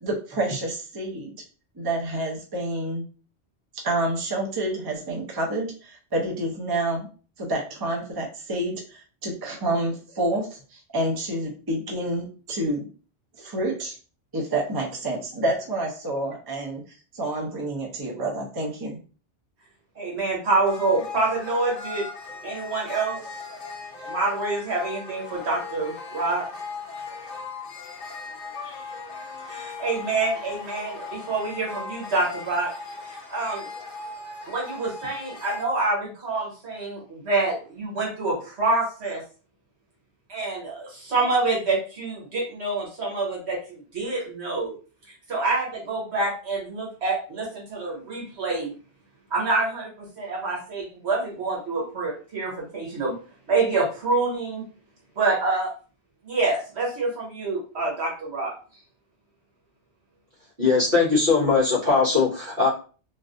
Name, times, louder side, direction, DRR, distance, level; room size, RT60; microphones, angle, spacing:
voice 1, 0.0-1.3 1.8-3.0 3.8-7.1 7.4-12.9 13.4-13.9 14.3-16.8 17.1-19.0, right 1 dB, 25° right, -1 dB, 0.5 m, -28 dB
voice 2, 19.9-22.0 22.4-23.2 24.1-26.4 29.5-32.7 33.1-33.7 34.5-39.2 40.3-44.7 45.3-48.7 49.3-53.1 53.5-54.6 55.2-55.7 56.2-58.5, right 3 dB, 70° right, -3 dB, 1.4 m, -26 dB
sound 1, 20.7-35.6, left 4 dB, 55° left, 0.9 m, -38 dB
voice 3, 60.6-62.7, left 4 dB, 55° right, -6 dB, 1.7 m, -20 dB
3.2 x 2.4 x 2.5 m, 0.38 s
omnidirectional pair, 1.2 m